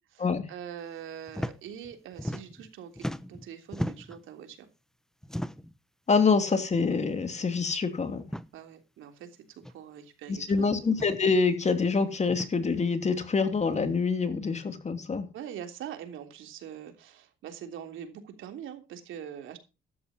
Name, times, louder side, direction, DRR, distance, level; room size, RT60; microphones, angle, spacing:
voice 1, 0.1-4.7 8.5-10.8 15.3-19.6, right 9 dB, 85° right, 3.2 m, -43 dB
sound 1, 1.3-1.6 1.8-2.7 2.9-4.2 5.2-5.8 6.7-6.9 7.2-7.3 8.2-8.5 9.6-9.7 10.9-11.2 12.3-12.5, equal, ahead, 0.9 m, -36 dB
voice 2, 6.1-8.2 10.3-15.3, left 4 dB, 35° left, 2.8 m, -26 dB
14.0 x 12.5 x 2.9 m
cardioid pair, 90°, 20 cm